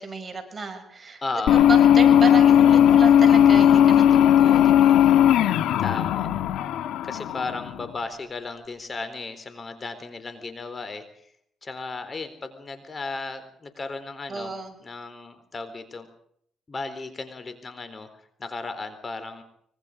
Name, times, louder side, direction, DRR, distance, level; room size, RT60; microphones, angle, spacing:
voice 1, 0.0-1.2 1.7-5.1 14.3-14.7, right 4 dB, 30° right, 5 dB, 6.6 m, -32 dB
voice 2, 1.2-1.7 5.8-6.3 7.0-11.0 11.6-14.5 14.8-16.1 16.7-18.1 18.4-19.4, left 3 dB, 35° left, 10 dB, 3.9 m, -35 dB
sound 1, 1.5-7.8, left 10 dB, 85° left, 1.7 m, -17 dB
25.5 x 24.0 x 5.1 m, 0.68 s
cardioid pair, 90°, 0 cm